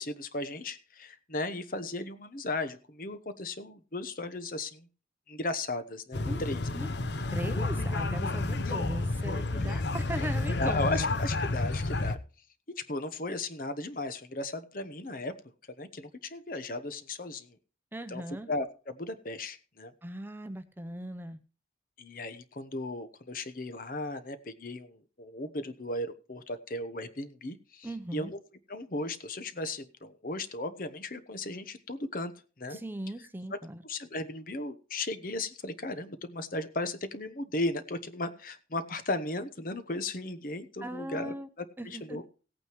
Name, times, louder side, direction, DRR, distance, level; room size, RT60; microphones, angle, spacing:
voice 1, 0.0-4.9 5.3-6.7 8.6-8.7 9.7-9.8 10.6-12.2 12.8-15.3 15.8-17.6 18.1-18.2 18.5-19.9 22.0-28.4 28.7-32.3 32.6-32.8 33.8-42.2, left 2 dB, 50° left, 10 dB, 1.0 m, -36 dB
sound 1, 6.1-12.2, left 2 dB, 70° left, 0.8 m, -30 dB
voice 2, 7.3-10.9 17.9-18.5 20.0-21.4 27.8-28.3 32.7-33.8 40.8-41.5 41.8-42.2, right 1 dB, 10° right, 9 dB, 0.7 m, -39 dB
17.0 x 8.9 x 3.1 m, 0.36 s
head